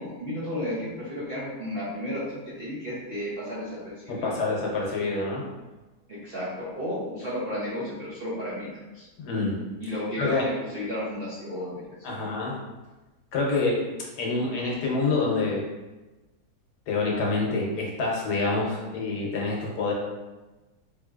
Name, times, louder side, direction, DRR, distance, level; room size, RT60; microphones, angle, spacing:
voice 1, 0.0-4.4 6.1-8.7 8.9-9.1 9.8-12.3, left 1 dB, 55° right, -9 dB, 0.7 m, -33 dB
voice 2, 4.1-5.4 9.2-9.6 10.2-10.5 12.0-12.6 13.3-13.8 14.2-15.6 16.9-19.9, left 3 dB, 75° left, -2 dB, 1.3 m, -27 dB
3.7 x 2.7 x 2.4 m, 1.1 s
omnidirectional pair, 1.7 m